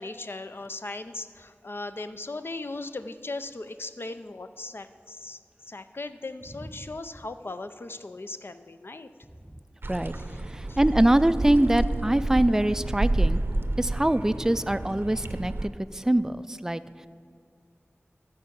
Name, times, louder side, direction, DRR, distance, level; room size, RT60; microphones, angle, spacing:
voice 1, 0.0-9.1 10.2-10.4 10.7-10.8, left 2 dB, 55° left, 10 dB, 0.5 m, -38 dB
sound 1, 9.8-15.7, right 2 dB, 50° right, 0.6 m, -29 dB
voice 2, 10.5-13.4 13.8-16.8, right 1 dB, 10° right, 12 dB, 0.3 m, -24 dB
13.5 x 4.8 x 6.9 m, 2.2 s
wide cardioid pair, 50°, 5 cm